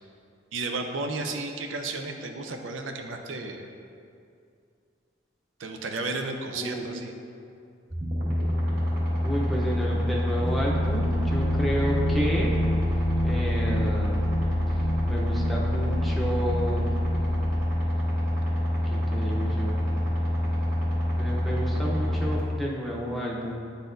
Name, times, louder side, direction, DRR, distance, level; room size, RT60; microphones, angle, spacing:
voice 1, 0.5-3.7 5.6-7.1, right 3 dB, 80° right, 4 dB, 0.5 m, -33 dB
voice 2, 6.5-6.8 9.2-12.5 13.2-14.3 15.0-16.9 18.9-19.8 21.2-23.6, equal, ahead, -4 dB, 0.6 m, -31 dB
sound 1, 7.9-22.4, equal, 50° right, 1.5 m, -26 dB
sound 2, 10.4-17.6, left 1 dB, 70° left, 0.5 m, -31 dB
9.4 x 4.0 x 2.6 m, 2.4 s
head